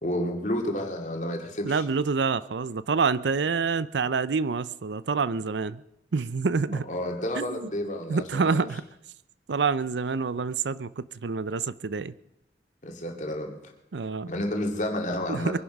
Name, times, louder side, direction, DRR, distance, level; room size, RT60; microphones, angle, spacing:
voice 1, 0.0-1.8 6.9-8.7 12.8-13.7 14.3-15.6, left 1 dB, 45° left, 2 dB, 2.5 m, -30 dB
voice 2, 1.6-5.8 6.1-6.9 7.4-7.7 8.1-8.8 9.5-12.1 13.9-14.3 15.3-15.6, right 4 dB, 80° right, 17 dB, 0.5 m, -27 dB
23.0 x 11.0 x 5.3 m, 0.82 s
head